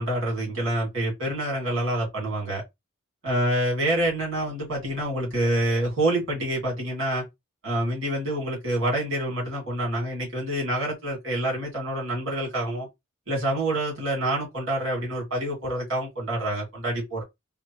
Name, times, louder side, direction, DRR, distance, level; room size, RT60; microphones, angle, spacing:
voice 1, 0.0-2.6 3.2-7.2 7.6-12.9 13.3-17.2, right 1 dB, 65° right, 2.3 m, -27 dB
3.6 x 2.3 x 2.9 m
head